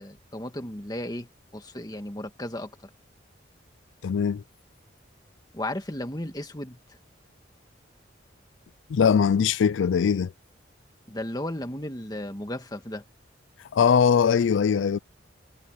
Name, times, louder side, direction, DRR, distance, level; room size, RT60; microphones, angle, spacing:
voice 1, 0.0-2.9 5.5-7.0 11.1-13.0, left 1 dB, 20° left, 1.9 m, -35 dB
voice 2, 4.0-4.4 8.9-10.3 13.7-15.0, left 7 dB, 80° left, 0.4 m, -21 dB
head